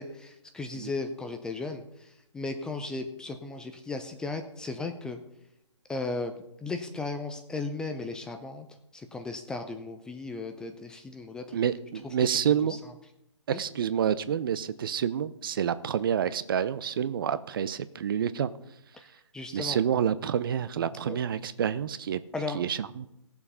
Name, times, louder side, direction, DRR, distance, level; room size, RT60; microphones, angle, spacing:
voice 1, 0.0-5.2 5.9-8.7 8.9-11.6 12.0-12.4 12.7-12.9 13.5-13.6 18.9-19.1 19.3-19.8 21.1-21.2 22.3-22.6, left 3 dB, 5° left, 6 dB, 0.5 m, -36 dB
voice 2, 11.5-12.8 13.5-18.5 19.5-22.2 22.5-23.1, right 8 dB, 45° right, 15 dB, 0.7 m, -28 dB
16.0 x 7.1 x 5.5 m, 0.82 s
hypercardioid pair, 145°, 17 cm